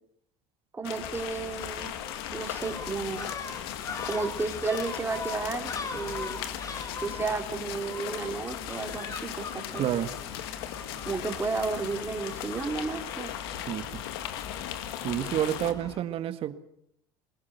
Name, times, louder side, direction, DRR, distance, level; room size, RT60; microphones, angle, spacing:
voice 1, 0.7-1.9 2.3-3.3 4.0-6.4 7.0-9.9 11.1-13.3, right 4 dB, 20° right, 4 dB, 3.4 m, -32 dB
sound 1, 0.8-15.7, left 11 dB, 85° left, 1.9 m, -38 dB
Gull seagull, 1.0-16.0, left 4 dB, 25° left, 2.7 m, -41 dB
voice 2, 9.8-10.1 13.7-13.9 15.0-16.5, right 11 dB, 50° right, 10 dB, 1.7 m, -29 dB
22.0 x 19.5 x 8.2 m, 0.72 s
supercardioid pair, 110°, 12 cm